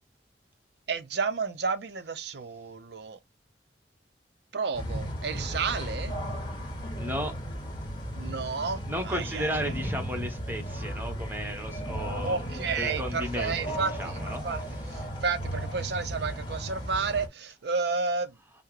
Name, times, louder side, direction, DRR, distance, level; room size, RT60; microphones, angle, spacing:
voice 1, 0.9-3.2 4.5-6.1 8.1-9.5 12.2-14.6 14.9-18.3, right 4 dB, 65° right, 0.6 m, -31 dB
sound 1, 4.7-17.3, equal, 25° left, 2.0 m, -35 dB
voice 2, 7.0-7.3 8.9-12.3 12.8-14.4, equal, 10° right, 1.1 m, -34 dB
5.6 x 2.1 x 3.2 m
head